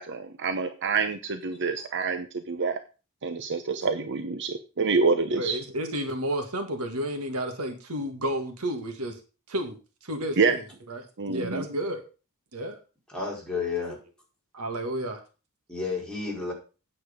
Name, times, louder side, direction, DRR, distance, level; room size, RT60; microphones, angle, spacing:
voice 1, 0.0-2.8 3.2-5.6 10.4-10.6 11.2-11.6, right 4 dB, 55° right, 9 dB, 0.8 m, -27 dB
voice 2, 5.4-9.2 9.5-10.6 10.9-12.0 12.5-12.8 13.9-14.0 14.5-15.2, right 1 dB, 80° right, 6 dB, 1.9 m, -31 dB
voice 3, 13.1-14.0 15.7-16.5, left 4 dB, 5° left, -4 dB, 4.8 m, -31 dB
9.2 x 7.6 x 5.1 m, 0.33 s
head